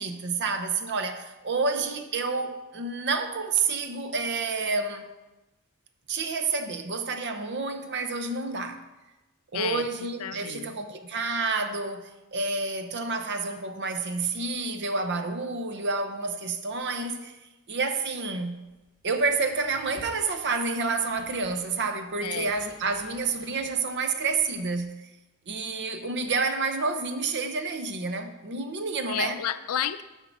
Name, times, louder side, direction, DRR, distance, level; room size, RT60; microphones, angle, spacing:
voice 1, 0.0-5.1 6.1-8.8 9.5-17.3 17.7-18.6 19.0-25.1 25.5-29.4, right 4 dB, 55° right, 7 dB, 0.8 m, -29 dB
voice 2, 9.5-9.9 10.2-10.7 22.2-22.5 29.1-30.0, left 10 dB, 70° left, 13 dB, 0.4 m, -31 dB
sound 1, 18.6-24.8, right 1 dB, 20° right, 1.6 m, -54 dB
10.0 x 3.7 x 7.1 m, 1.1 s
head